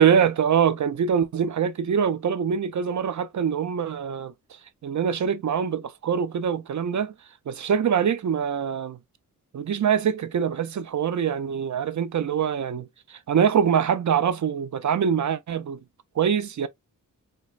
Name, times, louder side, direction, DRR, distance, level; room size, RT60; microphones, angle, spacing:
voice 1, 0.0-4.3 4.8-7.1 7.5-9.0 9.5-15.8 16.2-16.7, right 7 dB, 55° right, 0.5 m, -24 dB
4.3 x 3.0 x 2.4 m
wide cardioid pair, 105°, 34 cm